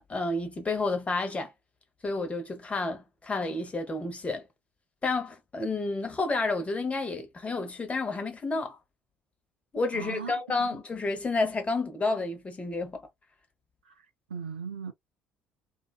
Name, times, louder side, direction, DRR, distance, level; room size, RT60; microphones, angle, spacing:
voice 1, 0.1-1.5 2.0-4.5 5.0-8.8 9.7-13.0, left 3 dB, 25° left, 1.0 m, -30 dB
voice 2, 9.9-10.8 13.8-14.9, right 6 dB, 80° right, 0.5 m, -39 dB
2.7 x 2.3 x 2.3 m
figure-of-eight pair, 55°, 5 cm